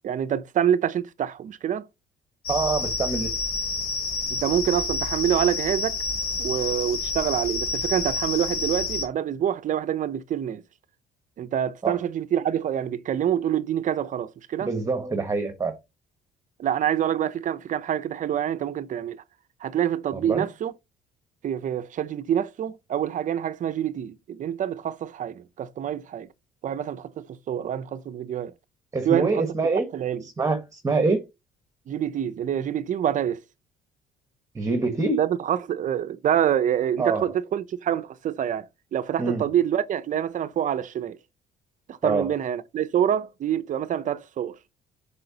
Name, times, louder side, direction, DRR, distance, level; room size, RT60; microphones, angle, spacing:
voice 1, 0.0-1.9 4.3-6.0 6.4-10.6 11.4-14.7 16.6-19.2 19.6-20.7 21.4-26.3 26.6-28.5 29.0-29.5 29.9-30.2 31.9-33.4 35.2-41.2 41.9-44.6, right 10 dB, 50° right, 0.7 m, -26 dB
sound 1, 2.4-9.0, left 4 dB, 90° left, 3.0 m, -29 dB
voice 2, 2.5-3.3 11.8-12.0 14.6-15.7 20.1-20.5 28.9-29.9 30.4-31.2 34.5-35.2 37.0-37.3 39.2-39.4 42.0-42.3, right 3 dB, 20° right, 1.3 m, -25 dB
7.7 x 5.6 x 2.9 m
cardioid pair, 110°, 17 cm